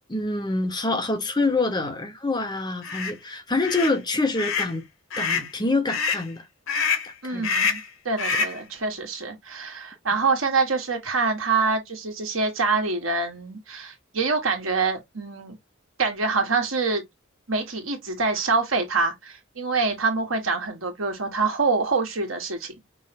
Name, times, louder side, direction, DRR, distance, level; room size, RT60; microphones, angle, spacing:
voice 1, 0.1-4.8 5.2-6.5 7.0-7.5 8.2-8.3, left 2 dB, 20° left, 0.8 m, -26 dB
sound 1, 2.8-3.1 3.6-3.9 4.4-4.7 5.1-5.5 5.9-6.2 6.7-7.1 7.4-7.9 8.2-8.6, left 5 dB, 90° left, 0.9 m, -26 dB
voice 2, 7.2-7.8 8.0-15.6 16.0-17.0 17.5-22.8, right 4 dB, 80° right, 1.5 m, -25 dB
5.5 x 3.2 x 2.2 m
head